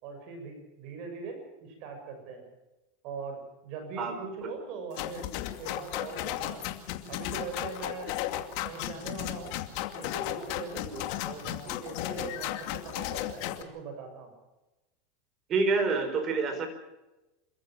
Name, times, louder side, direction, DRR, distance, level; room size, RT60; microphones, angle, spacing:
voice 1, 0.0-2.4 3.0-5.3 5.6-6.7 7.1-8.1 8.6-9.6 9.9-10.9 11.2-14.3, right 4 dB, 55° right, 4 dB, 6.6 m, -41 dB
voice 2, 4.0-4.5 10.8-11.1 15.5-16.7, right 4 dB, 35° right, 7 dB, 5.0 m, -28 dB
sound 1, 4.9-13.6, left 14 dB, 60° left, 2.3 m, -35 dB
27.0 x 14.0 x 7.5 m, 1.0 s
supercardioid pair, 115°, 0 cm